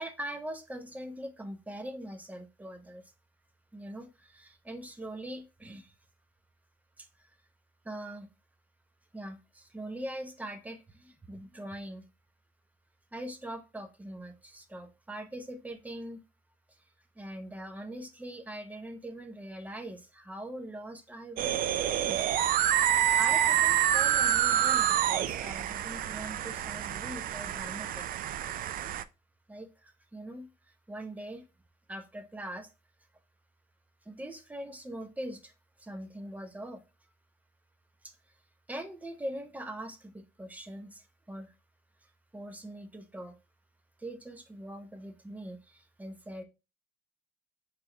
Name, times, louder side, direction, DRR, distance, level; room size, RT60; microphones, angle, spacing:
voice 1, 0.0-3.0 3.7-5.9 7.0-7.3 7.8-8.3 9.1-12.0 13.1-16.2 16.7-16.8 17.2-22.2 23.1-28.1 29.5-31.5 31.9-32.7 34.0-35.5 35.8-36.8 38.0-38.4 38.7-41.5 42.0-43.4 44.0-46.4, right 1 dB, 10° right, 6 dB, 0.8 m, -42 dB
sound 1, 21.4-29.0, right 11 dB, 55° right, 0.4 m, -27 dB
4.3 x 3.2 x 3.2 m, 0.28 s
cardioid pair, 110°, 17 cm